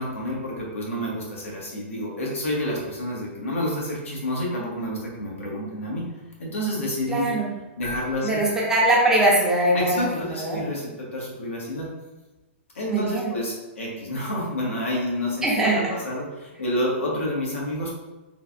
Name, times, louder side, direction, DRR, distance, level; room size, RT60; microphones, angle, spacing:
voice 1, 0.0-6.1 6.4-7.3 7.8-8.4 9.7-11.9 12.7-18.0, left 1 dB, 90° left, -3 dB, 1.1 m, -29 dB
voice 2, 7.1-7.5 8.2-10.6 12.9-13.3 15.4-15.9, right 1 dB, 5° right, -5 dB, 0.5 m, -22 dB
Keyboard (musical), 7.8-9.6, left 2 dB, 45° left, 0.8 m, -39 dB
3.2 x 2.2 x 2.5 m, 1.1 s
hypercardioid pair, 150°, 7 cm